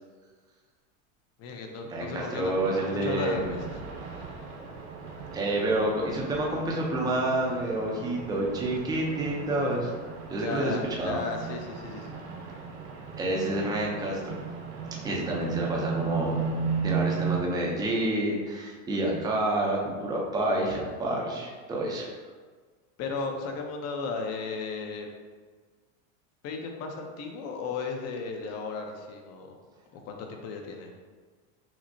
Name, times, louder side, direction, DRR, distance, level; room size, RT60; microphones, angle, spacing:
voice 1, 1.4-3.7 4.0-4.3 10.4-12.2 23.0-25.1 26.4-29.5 29.9-30.9, left 4 dB, 40° left, 3 dB, 0.6 m, -35 dB
voice 2, 1.9-3.6 5.3-9.9 10.3-11.2 13.2-14.3 15.0-16.4 16.8-22.1, right 1 dB, 10° right, -2 dB, 0.5 m, -28 dB
sound 1, 2.4-17.4, right 6 dB, 55° right, 0.8 m, -36 dB
5.9 x 2.1 x 2.6 m, 1.5 s
supercardioid pair, 130°, 41 cm